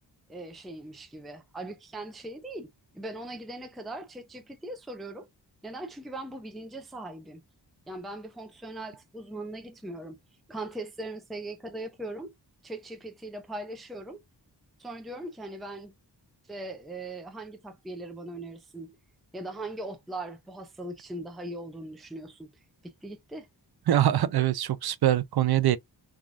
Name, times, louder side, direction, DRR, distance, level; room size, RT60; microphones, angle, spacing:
voice 1, 0.3-5.3 5.6-7.4 7.9-10.2 10.5-12.3 12.6-14.2 14.8-15.9 16.5-19.0 19.3-22.5 22.8-23.5, right 2 dB, ahead, 0.5 m, -40 dB
voice 2, 23.9-25.8, right 12 dB, 60° right, 0.5 m, -23 dB
3.3 x 2.3 x 2.4 m
wide cardioid pair, 115°, 43 cm